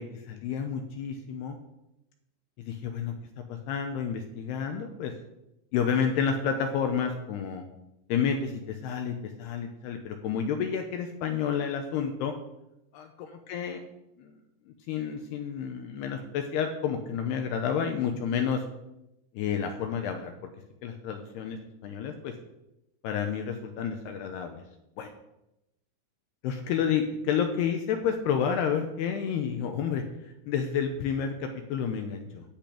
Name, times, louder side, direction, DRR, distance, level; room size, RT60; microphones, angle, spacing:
voice 1, 0.0-1.6 2.6-3.1 3.5-5.1 5.7-7.6 8.1-12.3 12.9-13.8 14.2-14.4 14.9-18.6 19.3-20.3 20.8-22.3 23.0-24.6 25.0-25.1 26.4-32.4, left 7 dB, 80° left, 5 dB, 2.6 m, -30 dB
10.5 x 5.8 x 8.4 m, 0.89 s
omnidirectional pair, 5.2 m